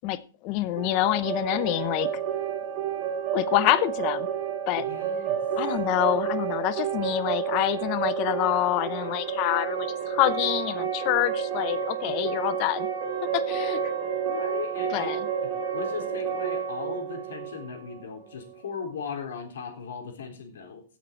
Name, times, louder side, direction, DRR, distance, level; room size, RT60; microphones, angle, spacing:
voice 1, 0.0-2.1 3.3-4.3 4.7-4.9 5.6-12.9 13.3-13.8 14.9-15.3, left 15 dB, 30° left, 0.7 m, -26 dB
sound 1, 0.8-18.5, right 7 dB, 35° right, 2.5 m, -30 dB
voice 2, 4.9-5.4 12.1-12.4 14.2-15.1 15.4-20.8, left 6 dB, 85° left, 3.5 m, -38 dB
15.0 x 6.9 x 4.4 m
supercardioid pair, 175°, 0 cm